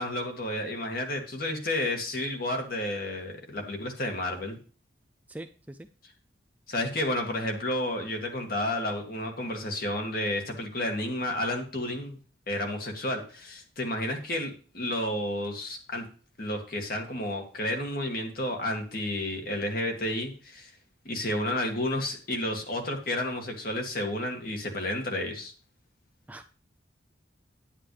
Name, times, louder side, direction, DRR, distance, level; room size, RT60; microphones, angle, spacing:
voice 1, 0.0-4.6 6.7-12.2 12.5-16.1 16.4-20.7 21.1-25.5, left 1 dB, 50° left, 3 dB, 2.1 m, -31 dB
voice 2, 5.3-5.9 26.3-26.5, right 1 dB, 10° right, 7 dB, 0.4 m, -43 dB
9.9 x 9.6 x 3.3 m, 0.38 s
head